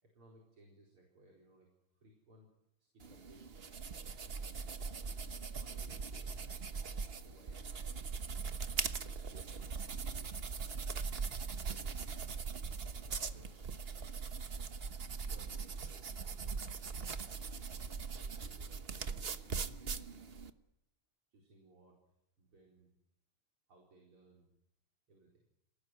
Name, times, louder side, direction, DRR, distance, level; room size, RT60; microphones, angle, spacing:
voice 1, 0.0-2.5 2.8-3.6 5.6-6.8 7.2-7.7 8.6-10.0 11.5-11.9 13.0-14.3 15.2-17.2 18.1-20.2 21.3-22.0 22.4-22.9 23.7-24.5 25.1-25.4, right 1 dB, 75° right, 0 dB, 5.4 m, -63 dB
sound 1, 3.0-20.5, right 5 dB, 40° right, 0.9 m, -41 dB
28.0 x 19.0 x 9.3 m, 0.83 s
omnidirectional pair, 2.4 m